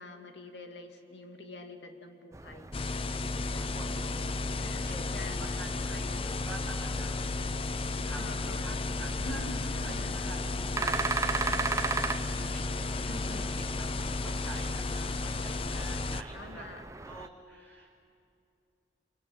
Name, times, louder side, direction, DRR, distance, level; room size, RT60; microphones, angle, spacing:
voice 1, 0.0-2.7 4.6-5.4 8.2-8.7 9.2-10.1 13.1-13.6 16.3-16.8, left 1 dB, 75° left, 5 dB, 2.3 m, -45 dB
sound 1, 2.3-17.3, right 4 dB, 15° right, 0.6 m, -39 dB
sound 2, 2.7-16.2, left 3 dB, 30° left, 0.5 m, -33 dB
voice 2, 3.5-7.7 8.0-18.0, right 2 dB, 10° left, -1 dB, 5.2 m, -48 dB
27.0 x 23.5 x 8.6 m, 2.5 s
head